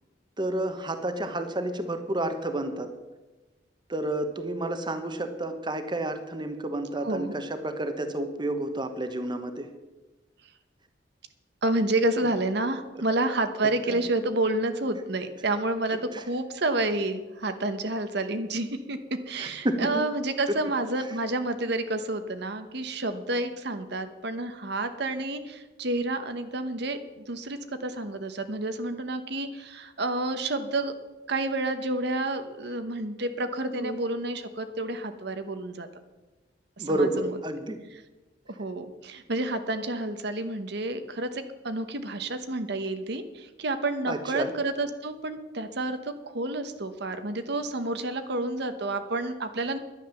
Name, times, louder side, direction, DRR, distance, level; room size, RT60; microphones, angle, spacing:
voice 1, 0.4-2.9 3.9-9.7 13.9-14.0 16.1-16.2 19.4-20.0 33.8-33.9 36.8-37.8 44.1-44.5, right 1 dB, 25° right, 8 dB, 1.1 m, -30 dB
voice 2, 7.0-7.4 11.6-30.9 31.3-35.9 36.8-37.3 38.5-49.8, right 2 dB, 60° right, 9 dB, 1.0 m, -29 dB
11.0 x 11.0 x 7.0 m, 1.1 s
head